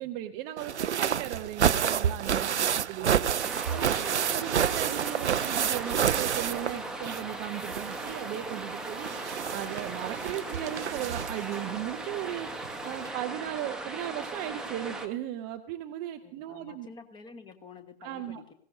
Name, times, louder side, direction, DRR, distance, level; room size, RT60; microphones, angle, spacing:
voice 1, 0.0-3.3 3.7-9.1 9.5-12.5 12.8-16.9 18.0-18.5, right 12 dB, 20° right, 7 dB, 0.6 m, -37 dB
sound 1, 0.6-7.3 7.6-11.6 12.6-12.7 13.1-13.2, right 8 dB, 80° right, 0.5 m, -29 dB
sound 2, 3.4-15.1, right 2 dB, ahead, 1.1 m, -38 dB
voice 2, 3.9-4.6 16.2-18.5, left 5 dB, 15° left, 8 dB, 1.4 m, -50 dB
20.0 x 17.0 x 2.6 m, 0.68 s
figure-of-eight pair, 110°, 34 cm